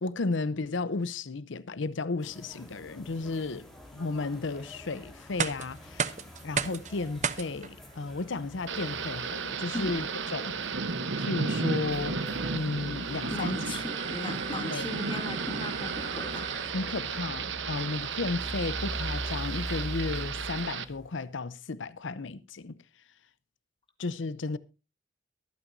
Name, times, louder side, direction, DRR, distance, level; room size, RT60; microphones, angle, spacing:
voice 1, 0.0-3.7 3.9-6.2 6.4-10.7 11.2-13.6 14.7-14.8 16.7-22.8 24.0-24.6, left 3 dB, 80° left, 0.7 m, -34 dB
sound 1, 2.2-21.3, equal, ahead, 3.8 m, -44 dB
sound 2, 5.2-17.1, right 7 dB, 40° right, 0.7 m, -38 dB
Thunder / Rain, 8.7-20.8, right 5 dB, 75° right, 1.0 m, -33 dB
voice 2, 13.3-16.5, left 1 dB, 25° left, 2.1 m, -38 dB
23.0 x 8.9 x 2.7 m
head